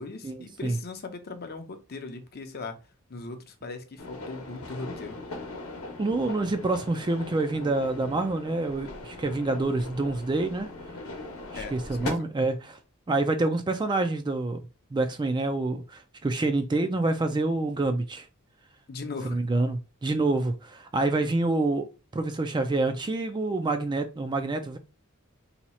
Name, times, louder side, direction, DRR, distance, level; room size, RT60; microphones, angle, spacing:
voice 1, 0.0-2.8 3.1-5.2 11.6-12.3 18.9-19.4, left 3 dB, 45° left, 0.6 m, -39 dB
sound 1, 4.0-12.1, left 2 dB, 70° left, 0.9 m, -40 dB
voice 2, 6.0-10.7 11.5-12.8 13.1-14.6 14.9-18.3 19.3-21.9 22.1-24.8, right 2 dB, 20° right, 0.3 m, -27 dB
2.8 x 2.3 x 4.1 m
head